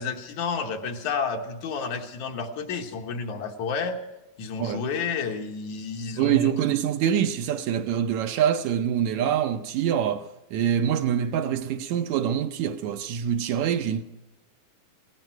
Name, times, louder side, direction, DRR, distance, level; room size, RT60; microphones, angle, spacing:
voice 1, 0.0-4.0 4.4-6.5, left 5 dB, 75° left, 2.6 m, -30 dB
voice 2, 6.1-14.0, right 9 dB, 75° right, 1.9 m, -25 dB
18.0 x 17.5 x 4.6 m
omnidirectional pair, 3.5 m